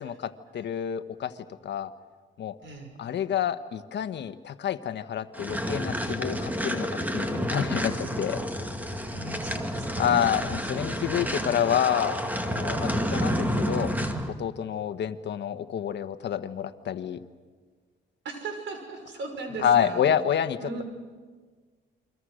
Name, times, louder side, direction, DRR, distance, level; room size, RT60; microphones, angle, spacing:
voice 1, 0.0-1.3 1.6-1.9 2.4-2.6 3.0-8.4 10.0-12.2 12.5-13.9 14.4-17.2 19.6-20.8, left 9 dB, 60° left, 10 dB, 1.3 m, -28 dB
voice 2, 2.6-3.0 9.1-10.4 18.2-20.0 20.6-20.8, right 3 dB, 70° right, 5 dB, 6.0 m, -38 dB
sound 1, 5.3-14.3, equal, 10° right, 2.2 m, -30 dB
28.5 x 23.5 x 6.5 m, 1.5 s
cardioid pair, 90°, 20 cm